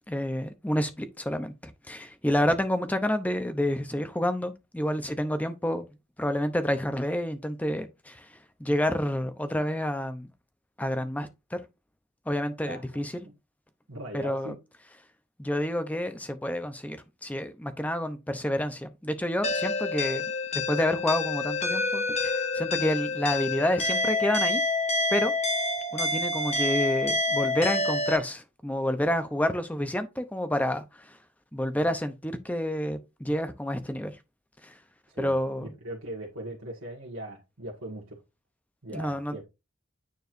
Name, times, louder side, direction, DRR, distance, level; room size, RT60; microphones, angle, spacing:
voice 1, 0.1-5.8 6.2-8.3 8.6-10.3 10.8-11.6 12.3-13.3 14.1-14.5 15.4-24.6 25.1-25.3 25.9-31.2 31.5-34.1 34.6-34.7 35.2-35.7 38.9-39.4, left 1 dB, 5° left, 0.6 m, -29 dB
voice 2, 12.7-13.0 13.9-14.6 35.1-38.2 38.8-39.4, right 1 dB, 85° right, 1.8 m, -40 dB
sound 1, 19.4-28.2, left 2 dB, 30° left, 1.2 m, -28 dB
9.3 x 4.6 x 2.6 m
head